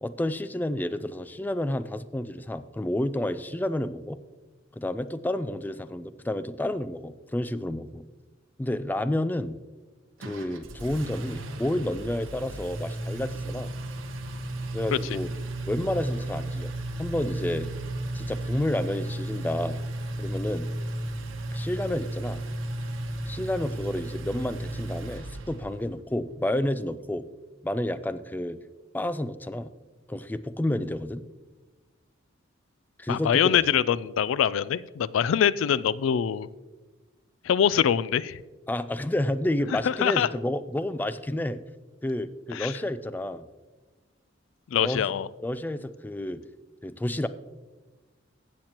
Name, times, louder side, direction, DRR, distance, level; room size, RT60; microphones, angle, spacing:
voice 1, 0.0-4.2 4.8-8.0 8.6-9.5 10.2-13.7 14.7-15.3 15.7-16.7 17.0-17.7 18.1-19.8 20.2-20.7 21.5-22.4 23.3-27.2 27.6-28.6 28.9-29.7 30.1-31.2 33.0-33.6 38.7-41.6 42.0-43.5 44.7-45.1 45.4-46.4 46.8-47.3, left 1 dB, 10° left, 13 dB, 0.3 m, -30 dB
Engine, 10.2-25.9, right 1 dB, 85° right, 1.0 m, -34 dB
voice 2, 33.1-36.5 37.4-38.4 39.9-40.3 42.5-42.7 44.7-45.3, left 8 dB, 85° left, 19 dB, 0.3 m, -24 dB
15.0 x 7.5 x 2.9 m, 1.2 s
head